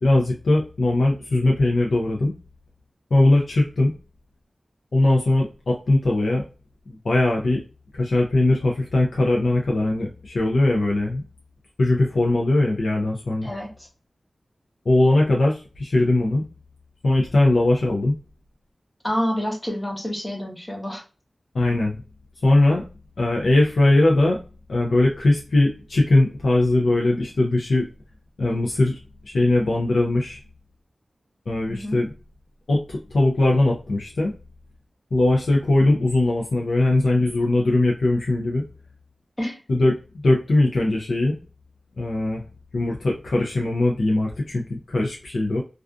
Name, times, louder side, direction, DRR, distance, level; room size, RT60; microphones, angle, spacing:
voice 1, 0.0-2.4 3.1-3.9 4.9-6.5 6.9-7.6 7.9-11.2 11.8-13.5 14.9-16.4 17.0-18.1 21.5-22.0 22.4-22.9 23.2-24.4 24.7-27.9 28.4-30.4 31.5-32.1 32.7-34.3 35.1-38.7 39.7-41.4 42.0-42.4 42.7-45.6, left 2 dB, 85° left, -1 dB, 0.5 m, -20 dB
voice 2, 13.4-13.9 19.0-21.0 31.7-32.0 39.4-39.6, equal, 20° left, 1 dB, 0.8 m, -28 dB
2.4 x 2.3 x 2.3 m, 0.33 s
wide cardioid pair, 95°, 0 cm